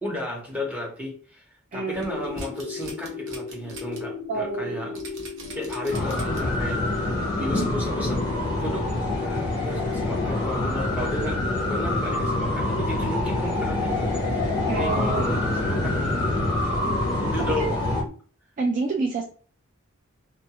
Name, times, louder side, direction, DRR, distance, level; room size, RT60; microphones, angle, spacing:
voice 1, 0.0-1.5 1.7-5.0 5.5-6.8 7.3-8.3 8.6-8.9 9.1-16.5 17.2-17.7, left 1 dB, 5° right, -3 dB, 1.0 m, -34 dB
sound 1, 1.7-18.1, left 5 dB, 70° left, 0.4 m, -36 dB
voice 2, 1.7-2.2 4.3-5.0 5.4-5.6 14.7-15.3 17.6-17.7 18.6-19.2, right 4 dB, 40° right, 1 dB, 0.3 m, -28 dB
sound 2, 1.9-4.0 4.4-4.5 5.0-6.6 7.1-7.2, right 2 dB, 60° right, 0.7 m, -41 dB
sound 3, 5.9-18.0, left 1 dB, 20° left, 0.7 m, -26 dB
2.5 x 2.3 x 2.8 m, 0.42 s
head